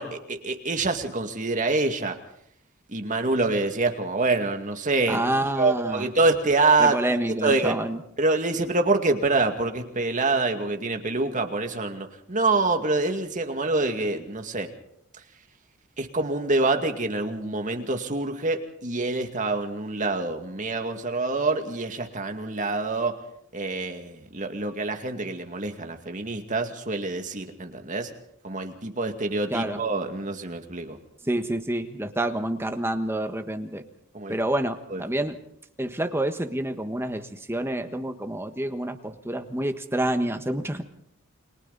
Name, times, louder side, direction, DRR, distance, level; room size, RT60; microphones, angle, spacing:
voice 1, 0.0-2.2 2.9-5.3 5.6-7.8 8.2-14.7 16.0-23.2 23.5-28.1 28.4-31.0 34.1-34.4 34.9-35.0, right 3 dB, 35° right, 5 dB, 2.2 m, -26 dB
voice 2, 5.1-6.0 6.8-8.0 29.5-29.8 31.3-33.8 34.3-35.4 35.8-37.2 37.5-40.8, right 1 dB, 10° right, 7 dB, 1.4 m, -28 dB
29.5 x 23.0 x 4.1 m, 0.72 s
head